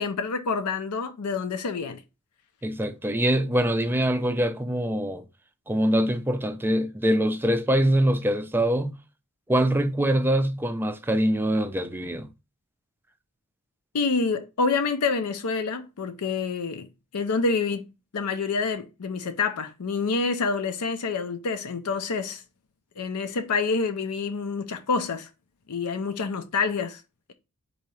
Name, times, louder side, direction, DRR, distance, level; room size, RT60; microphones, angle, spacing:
voice 1, 0.0-2.0 13.9-16.9 17.1-17.8 18.1-22.4 23.0-25.3 25.7-27.0, left 4 dB, 85° left, 0.6 m, -27 dB
voice 2, 2.6-5.2 5.7-9.0 9.5-12.3, right 1 dB, 10° right, 0.4 m, -24 dB
4.0 x 2.8 x 4.7 m
head